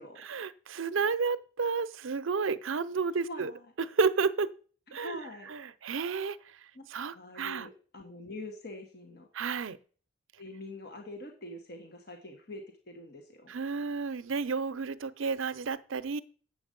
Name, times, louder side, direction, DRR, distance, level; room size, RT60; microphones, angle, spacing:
voice 1, 0.2-3.5 3.8-4.5 4.9-5.2 5.5-6.4 6.9-7.7 9.3-9.8 13.5-16.2, right 5 dB, 80° right, 14 dB, 0.6 m, -31 dB
voice 2, 3.1-3.7 5.0-5.5 6.7-6.9 7.1-9.3 10.4-13.5, left 1 dB, 50° left, 3 dB, 1.3 m, -44 dB
8.0 x 7.6 x 5.2 m, 0.41 s
head